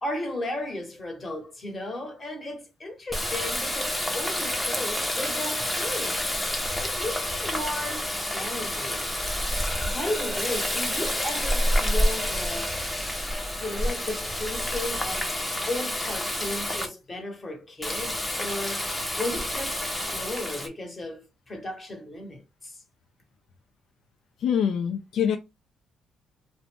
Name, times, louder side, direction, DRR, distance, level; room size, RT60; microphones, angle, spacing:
voice 1, 0.0-6.2 6.8-9.1 9.8-12.8 13.6-15.3 15.7-18.9 19.2-22.8, left 1 dB, 30° left, 1.2 m, -35 dB
Water tap faucet, 3.1-16.9 17.8-20.7, left 1 dB, 10° left, 0.7 m, -28 dB
voice 2, 24.4-25.4, left 8 dB, 75° left, 0.4 m, -24 dB
2.5 x 2.0 x 3.4 m
cardioid pair, 90°, 0 cm